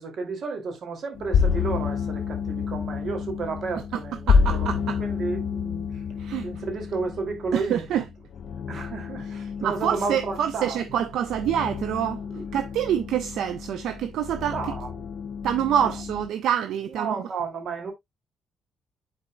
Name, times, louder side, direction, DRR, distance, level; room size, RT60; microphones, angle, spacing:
voice 1, 0.0-6.0 6.4-8.0 8.7-10.8 12.3-12.4 14.5-15.0 15.8-15.9 16.9-17.9, right 4 dB, 60° right, 2.6 m, -32 dB
sound 1, 1.1-16.3, left 6 dB, 65° left, 0.8 m, -29 dB
voice 2, 4.3-5.0 6.2-6.5 7.5-8.0 9.6-12.2 12.5-14.5 15.4-17.2, right 9 dB, 80° right, 0.6 m, -26 dB
10.5 x 4.4 x 2.3 m
cardioid pair, 90°, 0 cm